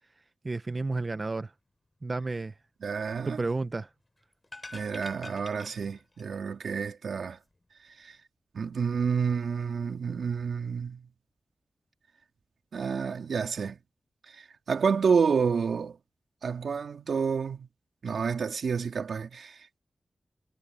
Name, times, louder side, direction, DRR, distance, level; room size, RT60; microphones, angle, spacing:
voice 1, 0.4-1.5 2.0-2.5 3.3-3.9, right 3 dB, 30° right, 0.7 m, -31 dB
voice 2, 2.8-3.4 4.7-7.4 8.0-8.2 8.5-11.1 12.7-13.8 14.3-16.0 16.4-17.7 18.0-19.8, right 6 dB, 85° right, 3.3 m, -29 dB
sound 1, 4.4-6.4 6.6-6.7, left 2 dB, 20° left, 4.5 m, -46 dB
wide cardioid pair, 175°, 0 cm